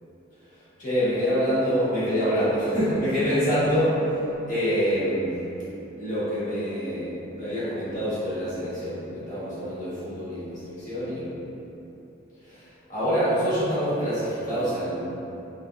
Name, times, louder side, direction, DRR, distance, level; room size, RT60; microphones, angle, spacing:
voice 1, 0.8-4.2 4.5-5.3 6.0-11.3 12.5-12.6 12.9-15.0, equal, 45° left, -13 dB, 1.4 m, -26 dB
3.4 x 2.7 x 2.4 m, 3.0 s
head